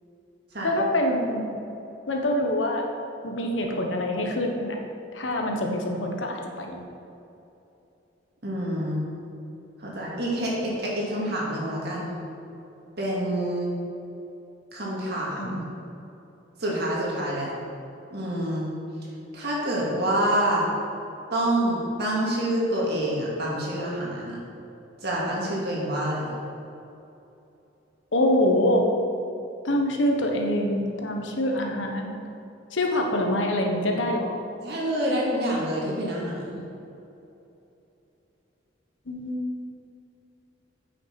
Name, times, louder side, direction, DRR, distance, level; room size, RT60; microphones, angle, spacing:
voice 1, 0.6-1.6 2.1-2.9 3.2-4.8 5.1-6.8 15.4-15.7 28.1-28.9 29.6-32.1 32.7-34.3 39.1-39.4, left 1 dB, 85° left, 2 dB, 1.2 m, -25 dB
voice 2, 8.4-9.1 9.8-12.1 13.0-13.8 14.7-15.6 16.6-17.5 18.1-18.7 19.3-20.7 21.3-24.4 25.0-26.3 34.6-36.6, right 1 dB, 60° right, -4 dB, 2.3 m, -27 dB
8.7 x 5.8 x 5.9 m, 2.8 s
head